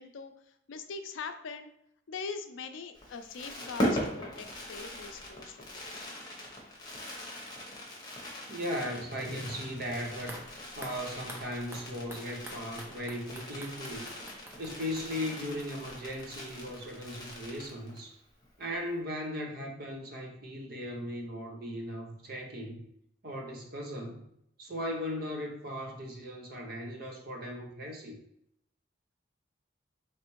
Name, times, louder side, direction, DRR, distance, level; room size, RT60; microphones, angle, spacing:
voice 1, 0.0-1.7 2.1-6.2, left 5 dB, 85° left, 8 dB, 0.4 m, -42 dB
Fireworks, 2.9-18.1 18.4-18.5 18.7-19.0, equal, 20° left, 1.0 m, -40 dB
voice 2, 8.5-10.4 10.8-14.1 14.6-18.2 18.6-22.8 23.2-24.2 24.6-28.2, equal, 50° right, 1 dB, 0.8 m, -37 dB
sound 1, 10.3-17.3 17.5-17.6, right 1 dB, 15° right, 0.5 m, -50 dB
4.1 x 3.2 x 3.0 m, 0.75 s
head